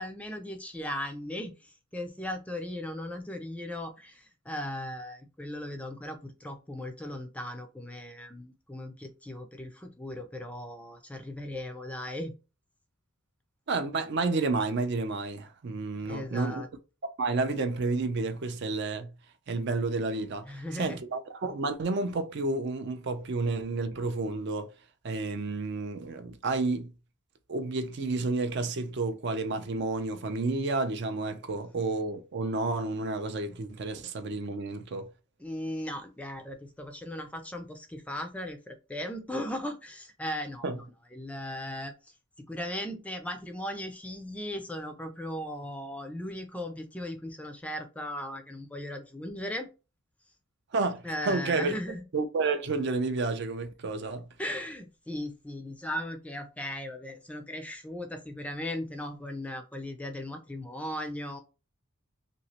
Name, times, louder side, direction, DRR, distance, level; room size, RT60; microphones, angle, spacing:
voice 1, 0.0-12.3 16.0-16.7 20.5-21.0 35.4-40.8 41.1-41.9 42.4-49.7 51.0-52.0 54.4-61.4, left 1 dB, 5° left, 0.4 m, -37 dB
voice 2, 13.7-16.6 17.2-19.1 19.5-24.7 25.0-26.9 27.5-35.1 40.6-40.8 50.7-51.7 52.1-54.3, right 3 dB, 50° right, 0.4 m, -30 dB
3.0 x 2.8 x 2.8 m
head